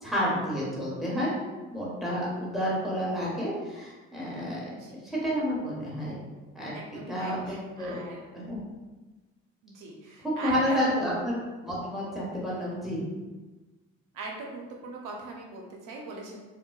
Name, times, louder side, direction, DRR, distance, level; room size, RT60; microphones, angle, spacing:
voice 1, 0.0-1.3 1.7-4.7 5.0-6.2 6.5-8.0 8.3-8.6 10.2-13.0, equal, ahead, -7 dB, 1.1 m, -30 dB
voice 2, 4.7-5.1 6.7-8.2 9.6-11.2 14.1-16.4, right 3 dB, 90° right, 0 dB, 0.6 m, -40 dB
3.7 x 2.1 x 2.2 m, 1.2 s
cardioid pair, 90°, 30 cm